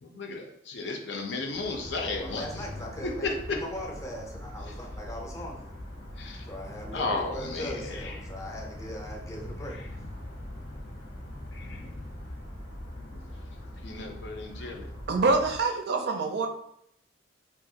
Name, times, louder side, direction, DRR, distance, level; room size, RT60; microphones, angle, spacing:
voice 1, 0.0-2.4 6.2-6.4 6.9-7.9 11.5-11.9 13.0-13.1 13.8-14.9, left 3 dB, 70° left, 2 dB, 0.5 m, -34 dB
sound 1, 1.5-15.6, left 1 dB, 90° left, 0.9 m, -41 dB
voice 2, 2.0-5.7 6.5-9.8, equal, 15° left, 0 dB, 0.5 m, -40 dB
voice 3, 15.1-16.5, right 3 dB, 60° right, 4 dB, 0.4 m, -25 dB
2.9 x 2.4 x 2.7 m, 0.74 s
head